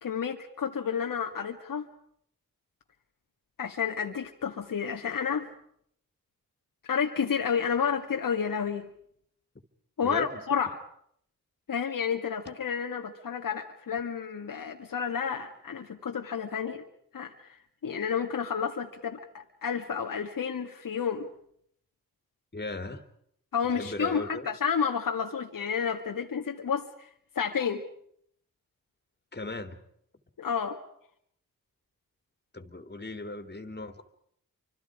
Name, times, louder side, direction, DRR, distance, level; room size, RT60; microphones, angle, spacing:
voice 1, 0.0-1.9 3.6-5.5 6.9-8.9 10.0-10.8 11.7-16.8 17.1-21.3 23.5-26.9 27.4-27.8 30.4-30.8, left 7 dB, 65° left, 3 dB, 2.0 m, -30 dB
voice 2, 10.0-10.4 22.5-23.0 23.8-24.5 29.3-29.8 32.5-34.0, left 2 dB, 30° left, 9 dB, 3.2 m, -37 dB
29.0 x 25.5 x 5.0 m, 0.69 s
supercardioid pair, 45°, 36 cm